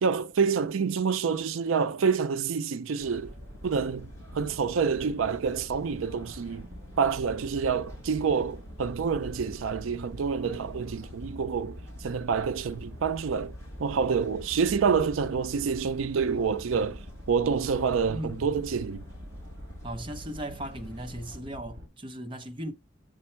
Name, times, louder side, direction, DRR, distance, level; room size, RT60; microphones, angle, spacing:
voice 1, 0.0-3.3 3.6-6.7 7.0-13.5 13.8-19.0, right 6 dB, 80° right, 0.4 m, -27 dB
sound 1, 3.0-21.4, equal, 15° left, 3.0 m, -47 dB
sound 2, 3.2-21.9, left 1 dB, 60° right, 1.9 m, -45 dB
voice 2, 18.1-18.5 19.8-22.7, right 1 dB, 25° right, 0.8 m, -37 dB
7.6 x 4.3 x 4.4 m
head